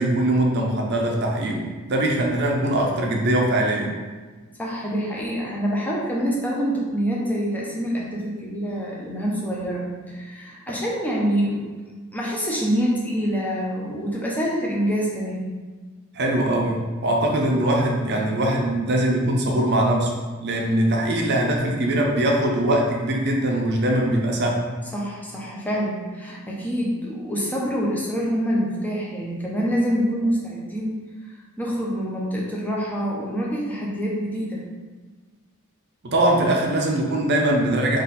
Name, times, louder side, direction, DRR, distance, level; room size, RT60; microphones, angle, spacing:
voice 1, 0.0-3.9 16.1-20.1 20.4-24.7 36.0-38.0, right 1 dB, 50° right, 0 dB, 0.7 m, -22 dB
voice 2, 4.6-11.7 12.1-15.5 24.9-31.0 31.6-34.6, equal, 5° left, -4 dB, 0.7 m, -26 dB
3.9 x 2.6 x 4.1 m, 1.3 s
head